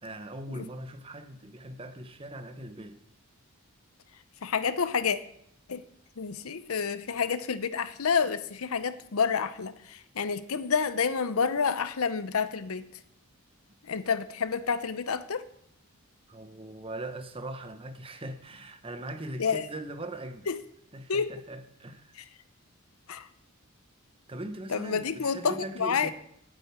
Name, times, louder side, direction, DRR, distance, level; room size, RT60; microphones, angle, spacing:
voice 1, 0.0-3.0 16.3-20.5 20.9-22.2 24.3-26.1, right 1 dB, 25° right, 9 dB, 0.9 m, -40 dB
voice 2, 4.4-5.2 5.7-5.8 6.2-12.8 13.8-15.4 19.4-19.7 20.5-20.6 21.1-21.3 22.2-22.3 23.1-23.3 24.7-26.1, left 6 dB, 75° left, 13 dB, 0.7 m, -29 dB
9.0 x 6.8 x 8.7 m, 0.70 s
head